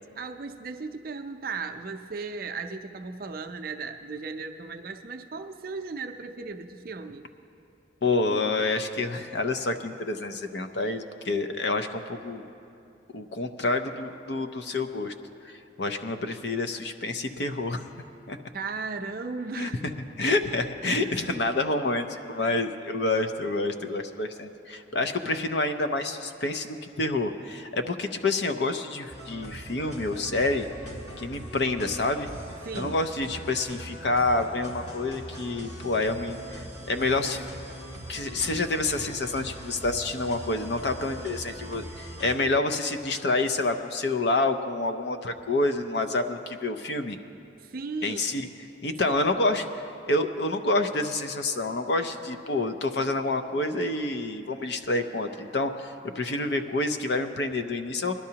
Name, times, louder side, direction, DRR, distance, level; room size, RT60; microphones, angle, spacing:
voice 1, 0.2-7.3 18.5-19.8 21.0-21.2 22.4-22.6 32.6-33.0 47.6-48.2 48.9-49.2, right 4 dB, 50° right, 6 dB, 0.5 m, -36 dB
voice 2, 8.0-12.4 13.1-15.1 15.4-17.9 18.3-18.4 19.6-19.9 20.2-30.7 31.2-32.3 32.8-37.5 38.1-47.2 48.0-48.5 48.8-58.1, left 2 dB, 60° left, 7 dB, 0.6 m, -28 dB
sound 1, 29.1-42.3, right 1 dB, 35° left, 1.7 m, -41 dB
20.0 x 12.0 x 2.8 m, 2.6 s
head